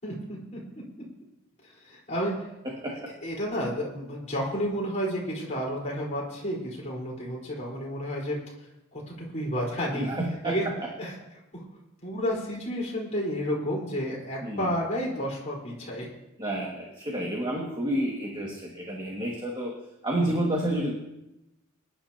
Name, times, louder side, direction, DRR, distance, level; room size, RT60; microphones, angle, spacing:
voice 1, 0.0-0.6 1.6-2.4 3.2-8.4 8.9-10.1 10.4-10.7 11.0-11.1 11.5-11.6 12.0-16.1 20.1-20.4, equal, 30° left, -5 dB, 4.6 m, -31 dB
voice 2, 2.6-3.1 9.9-10.7 14.4-14.7 16.4-19.7 20.0-20.9, right 1 dB, 20° right, -3 dB, 2.0 m, -30 dB
24.5 x 11.0 x 3.0 m, 0.92 s
head